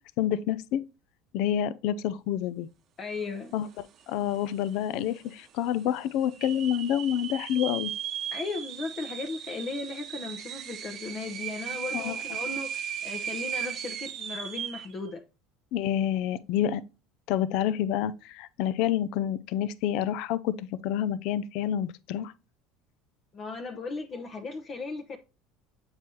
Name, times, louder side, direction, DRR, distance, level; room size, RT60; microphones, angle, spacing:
voice 1, 0.2-0.8 1.3-2.7 3.5-3.7 4.1-7.9 11.9-12.2 15.7-16.8 17.3-22.3, left 10 dB, 70° left, 0.4 m, -28 dB
voice 2, 3.0-3.5 8.3-15.2 23.3-25.2, left 3 dB, 40° left, 0.8 m, -36 dB
sound 1, 4.0-4.1 4.3-4.9 5.4-5.5 6.2-14.9, right 9 dB, 50° right, 0.8 m, -36 dB
7.4 x 4.8 x 2.9 m
supercardioid pair, 90°, 0 cm